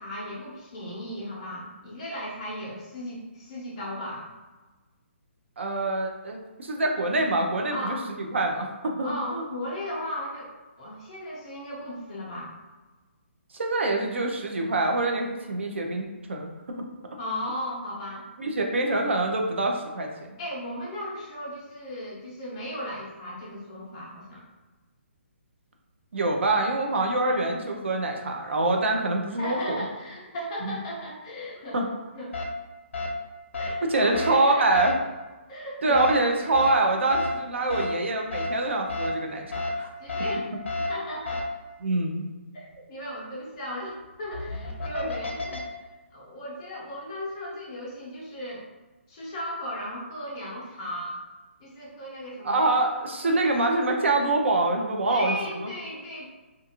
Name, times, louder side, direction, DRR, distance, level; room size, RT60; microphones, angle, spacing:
voice 1, 0.0-4.3 7.7-8.1 9.0-10.5 10.8-12.5 17.2-18.2 20.4-24.4 29.4-31.8 32.1-32.4 33.6-34.9 35.5-36.4 37.7-37.9 40.0-40.5 40.7-41.4 42.5-48.7 49.1-51.2 51.6-52.7 53.2-53.5 55.1-56.2, equal, 25° left, -6 dB, 0.7 m, -36 dB
voice 2, 5.6-9.4 13.5-16.5 18.4-20.1 26.1-29.8 30.6-30.8 31.7-31.9 33.9-34.9 35.8-39.9 41.8-42.2 52.4-55.3, right 2 dB, 65° right, 2 dB, 0.5 m, -25 dB
sound 1, 32.3-32.4 32.9-33.1 33.5-33.7 34.1-34.3 34.7-34.9 35.9-36.1 36.5-36.7 37.1-37.3 37.7-37.9 38.3-38.5 38.9-39.1 39.5-39.7 40.1-40.3 40.7-40.9 41.3-41.4 44.2-45.6, left 3 dB, 65° left, 0.6 m, -30 dB
2.5 x 2.4 x 2.8 m, 1.2 s
hypercardioid pair, 175°, 7 cm